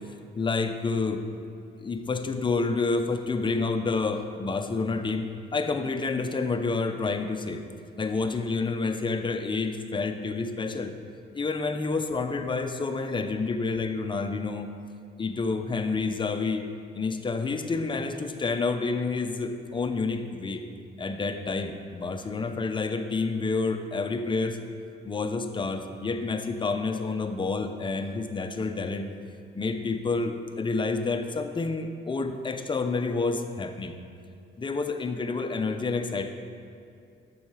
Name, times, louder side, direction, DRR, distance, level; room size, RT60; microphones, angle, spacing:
voice 1, 0.4-1.2 1.8-7.6 8.0-10.9 11.3-14.7 15.2-16.7 16.9-20.6 21.0-24.7 25.0-29.1 29.5-33.9 34.6-36.3, left 4 dB, 25° left, 7 dB, 0.6 m, -29 dB
6.9 x 5.6 x 4.8 m, 2.5 s
cardioid pair, 90°, 20 cm